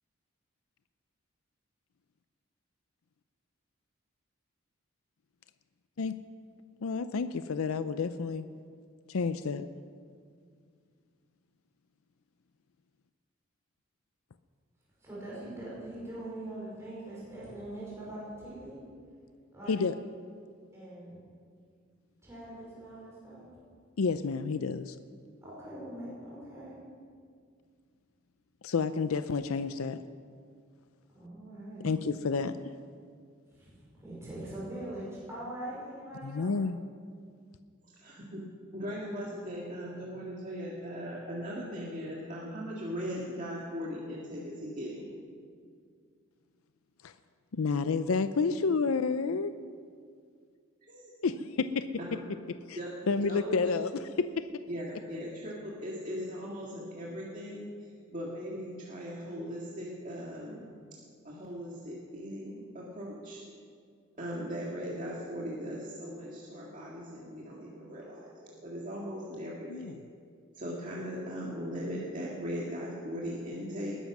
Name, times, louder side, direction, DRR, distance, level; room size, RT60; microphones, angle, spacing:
voice 1, 6.8-8.5 9.1-9.7 19.7-19.9 24.0-25.0 28.6-30.0 31.8-32.6 36.2-36.8 47.0-47.1 47.5-49.5 51.2-51.9 52.7-52.8 53.1-54.4 69.7-70.0, left 4 dB, 80° left, 11 dB, 0.5 m, -30 dB
voice 2, 15.0-18.8 19.5-19.8 20.7-21.2 22.2-23.5 25.4-26.8 31.1-31.9 33.5-36.5, right 1 dB, 15° right, -8 dB, 5.2 m, -42 dB
voice 3, 38.0-38.4 38.7-45.1 50.9-51.1 52.0-52.2 52.8-52.9 53.2-53.6 54.7-60.6 61.2-63.4 64.2-70.0 70.5-74.0, equal, 35° right, -4 dB, 2.0 m, -39 dB
20.5 x 11.0 x 6.1 m, 2.1 s
head